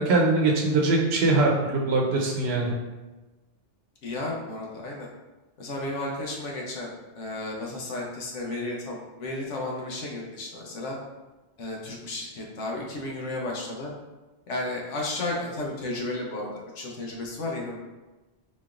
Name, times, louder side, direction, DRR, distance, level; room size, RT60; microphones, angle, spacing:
voice 1, 0.0-2.7, right 3 dB, 65° right, -1 dB, 0.9 m, -22 dB
voice 2, 4.0-5.1 5.6-6.9 7.2-11.0 11.6-13.9 14.5-17.9, left 2 dB, 85° left, -1 dB, 1.1 m, -33 dB
4.0 x 3.2 x 2.4 m, 1.2 s
omnidirectional pair, 1.2 m